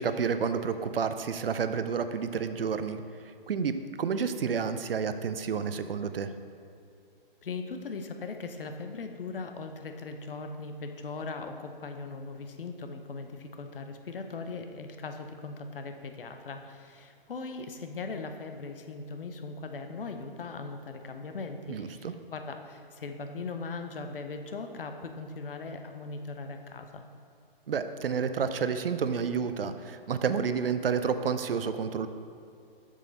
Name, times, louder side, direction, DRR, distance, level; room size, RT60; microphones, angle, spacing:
voice 1, 0.0-3.0 3.5-6.3 21.7-22.1 27.7-32.1, right 6 dB, 70° right, 10 dB, 0.6 m, -30 dB
voice 2, 7.4-27.0, left 4 dB, 65° left, 6 dB, 0.8 m, -39 dB
7.4 x 6.5 x 4.0 m, 2.5 s
figure-of-eight pair, 130°, 29 cm